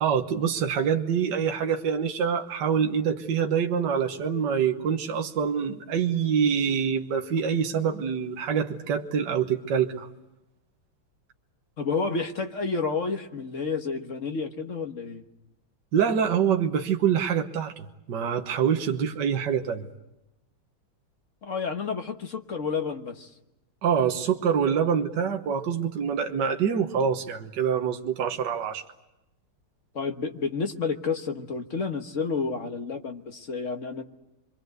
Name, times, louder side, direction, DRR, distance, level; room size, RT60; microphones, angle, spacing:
voice 1, 0.0-10.1 15.9-19.9 23.8-28.8, right 7 dB, 60° right, 3 dB, 1.8 m, -25 dB
voice 2, 11.8-15.2 21.4-23.3 29.9-34.0, left 4 dB, 40° left, 5 dB, 1.4 m, -30 dB
27.0 x 24.0 x 8.0 m, 0.94 s
omnidirectional pair, 2.3 m